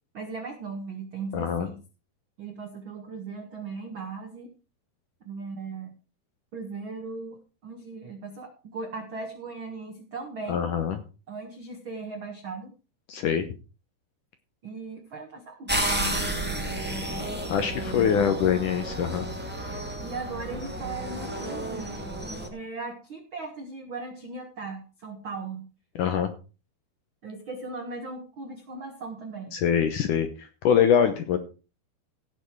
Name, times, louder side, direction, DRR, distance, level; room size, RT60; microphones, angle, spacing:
voice 1, 0.1-1.8 2.4-4.5 5.2-5.9 6.5-7.4 7.6-10.6 11.3-12.7 14.6-16.4 16.9-17.4 17.8-18.4 20.0-22.0 22.5-25.7 27.2-29.6, right 4 dB, 70° right, 5 dB, 1.1 m, -38 dB
voice 2, 1.3-1.7 10.5-11.0 13.1-13.5 17.5-19.3 26.0-26.3 29.5-31.4, left 8 dB, 70° left, 9 dB, 2.0 m, -24 dB
sound 1, 15.7-22.5, right 1 dB, 10° right, 0.6 m, -31 dB
16.5 x 6.9 x 4.6 m, 0.33 s
omnidirectional pair, 4.8 m